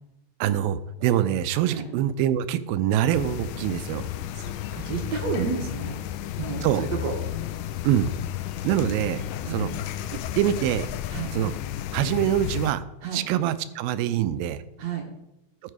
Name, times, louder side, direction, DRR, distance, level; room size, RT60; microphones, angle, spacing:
voice 1, 0.4-4.1 5.4-5.5 6.6-6.8 7.8-8.1 8.6-9.2 9.5-9.7 10.4-10.9 11.3-11.5 11.9-12.8 13.1-14.6, right 11 dB, 85° right, 12 dB, 2.4 m, -24 dB
sound 1, 3.1-12.7, left 12 dB, 80° left, 1.9 m, -33 dB
voice 2, 4.3-6.0 6.4-7.1 9.4-9.7 11.1-11.3 13.0-13.2 14.8-15.1, right 6 dB, 60° right, 1 dB, 2.0 m, -31 dB
14.0 x 5.5 x 4.9 m, 0.87 s
omnidirectional pair, 4.2 m